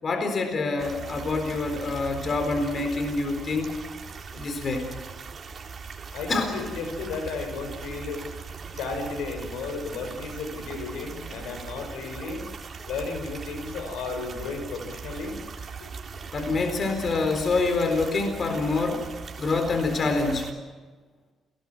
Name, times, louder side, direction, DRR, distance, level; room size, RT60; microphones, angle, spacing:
voice 1, 0.0-3.7 4.3-4.8 6.3-6.5 16.3-19.0 19.4-20.5, left 3 dB, 45° left, 6 dB, 4.1 m, -26 dB
sound 1, 0.8-20.5, right 5 dB, 45° right, 3.7 m, -40 dB
voice 2, 6.1-8.2 8.7-12.4 12.8-15.4, left 4 dB, 85° left, 6 dB, 6.6 m, -33 dB
29.0 x 20.0 x 7.6 m, 1.3 s
cardioid pair, 90°, 0 cm